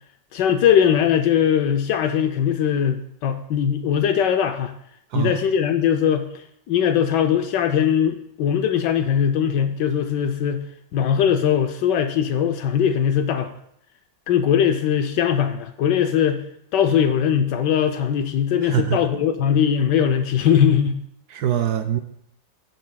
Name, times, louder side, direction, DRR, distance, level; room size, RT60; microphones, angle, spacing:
voice 1, 0.3-4.7 5.1-6.3 6.7-10.6 10.9-13.5 14.3-16.4 16.7-21.0, left 8 dB, 75° left, 6 dB, 1.2 m, -20 dB
voice 2, 18.6-19.1 21.3-22.0, right 10 dB, 70° right, 7 dB, 1.0 m, -23 dB
15.0 x 7.6 x 2.2 m, 0.71 s
omnidirectional pair, 2.0 m